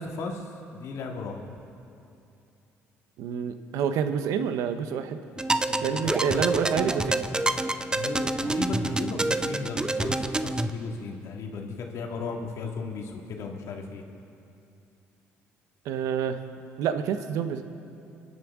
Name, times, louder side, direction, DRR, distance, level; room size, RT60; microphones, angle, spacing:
voice 1, 0.0-1.4 5.7-6.2 7.9-14.0, left 4 dB, 65° left, 2 dB, 1.9 m, -36 dB
voice 2, 3.2-5.2 5.8-7.3 15.8-16.4 16.8-17.6, right 8 dB, 80° right, 9 dB, 0.8 m, -28 dB
sound 1, 5.4-10.7, right 2 dB, 15° right, 0.6 m, -27 dB
26.0 x 10.5 x 3.6 m, 2.6 s
supercardioid pair, 80°, 5 cm